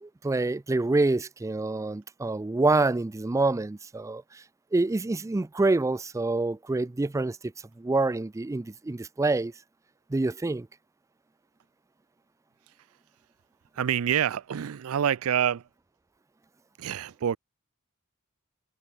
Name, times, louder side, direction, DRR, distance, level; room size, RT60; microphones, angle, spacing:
voice 1, 0.0-4.4 4.7-7.4 7.8-9.5 10.1-10.7, right 2 dB, 15° right, 0.4 m, -26 dB
voice 2, 13.8-15.6 16.8-17.4, right 9 dB, 75° right, 0.4 m, -27 dB
head